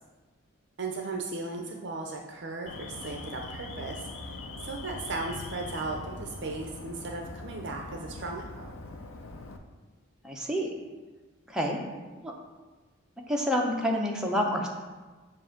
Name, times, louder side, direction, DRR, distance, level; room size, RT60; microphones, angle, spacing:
voice 1, 0.8-8.7, right 3 dB, 55° right, 2 dB, 0.5 m, -36 dB
Alarm, 2.7-9.6, left 2 dB, 75° left, 0.5 m, -42 dB
voice 2, 10.2-10.7 11.5-11.8 12.2-12.3 13.3-14.7, equal, 5° right, -1 dB, 0.6 m, -28 dB
7.5 x 2.5 x 5.7 m, 1.3 s
head